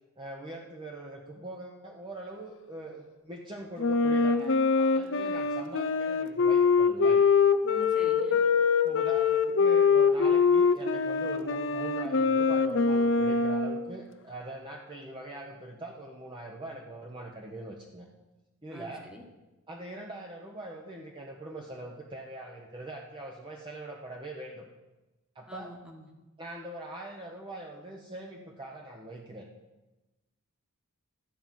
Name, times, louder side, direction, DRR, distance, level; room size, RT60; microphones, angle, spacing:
voice 1, 0.2-7.2 8.8-18.1 18.6-19.1 19.7-24.7 25.3-25.7 26.4-29.4, right 1 dB, 20° right, -1 dB, 1.0 m, -42 dB
Wind instrument woodwind instrument, 3.8-13.8, left 5 dB, 60° left, 0.7 m, -24 dB
voice 2, 7.7-8.4 18.7-19.2 25.5-26.1, left 1 dB, 5° right, 2 dB, 1.5 m, -46 dB
13.0 x 5.5 x 9.1 m, 1.1 s
head